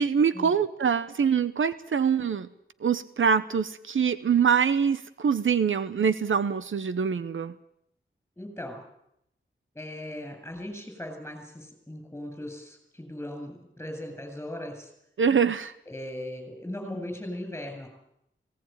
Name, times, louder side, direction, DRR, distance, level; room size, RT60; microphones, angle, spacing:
voice 1, 0.0-2.5 2.8-7.5 15.2-15.7, right 6 dB, 75° right, 13 dB, 0.9 m, -24 dB
voice 2, 8.4-8.8 9.7-14.9 15.9-17.9, left 1 dB, 10° left, 5 dB, 7.8 m, -38 dB
18.5 x 18.0 x 9.2 m, 0.78 s
wide cardioid pair, 115°, 20 cm